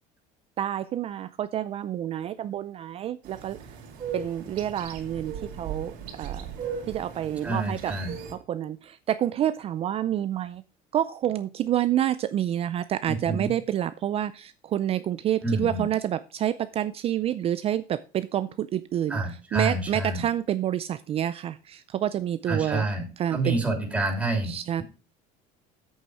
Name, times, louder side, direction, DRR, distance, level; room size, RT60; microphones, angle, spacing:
voice 1, 0.6-3.6 4.1-6.5 6.9-7.9 8.3-10.6 10.9-19.2 19.5-22.8 23.2-23.6 24.4-24.8, right 11 dB, 35° right, 0.4 m, -28 dB
sound 1, 3.2-8.3, right 7 dB, 70° right, 3.3 m, -38 dB
voice 2, 7.4-8.1 13.0-13.5 15.4-15.9 19.1-20.2 22.5-24.5, right 2 dB, 5° right, 3.0 m, -28 dB
8.4 x 7.3 x 4.8 m
cardioid pair, 140°, 17 cm